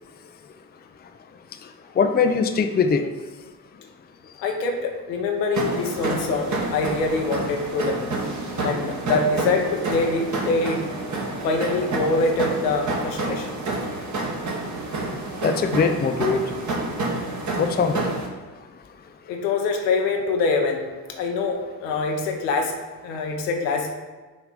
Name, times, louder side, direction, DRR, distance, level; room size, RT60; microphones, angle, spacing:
voice 1, 2.0-3.0 15.4-16.4 17.6-18.1, left 5 dB, 20° left, 7 dB, 0.5 m, -21 dB
voice 2, 4.4-8.1 8.6-10.8 11.4-13.5 19.3-20.8 21.2-22.7 23.0-23.9, left 3 dB, 85° left, 2 dB, 1.0 m, -24 dB
sound 1, 5.5-18.3, right 2 dB, 35° right, 1.4 m, -29 dB
6.3 x 3.6 x 5.0 m, 1.3 s
hypercardioid pair, 55°, 48 cm